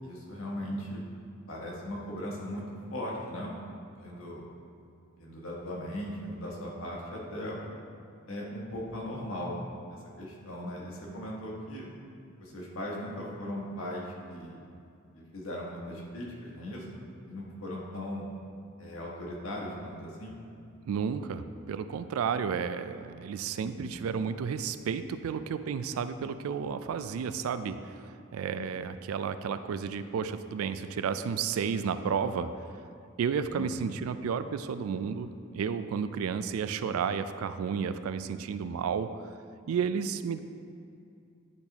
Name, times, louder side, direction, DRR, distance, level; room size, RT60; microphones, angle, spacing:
voice 1, 0.0-1.0 1.5-3.5 4.0-4.5 5.2-7.6 8.3-9.6 9.9-11.9 12.4-14.6 15.1-16.9 17.2-18.3 18.8-20.3 23.6-23.9 28.5-28.8 33.5-33.9, left 1 dB, 70° left, -3 dB, 1.3 m, -38 dB
voice 2, 20.9-32.5 33.2-39.1 39.7-40.4, right 6 dB, 85° right, 12 dB, 0.3 m, -32 dB
10.5 x 4.0 x 2.9 m, 2.5 s
head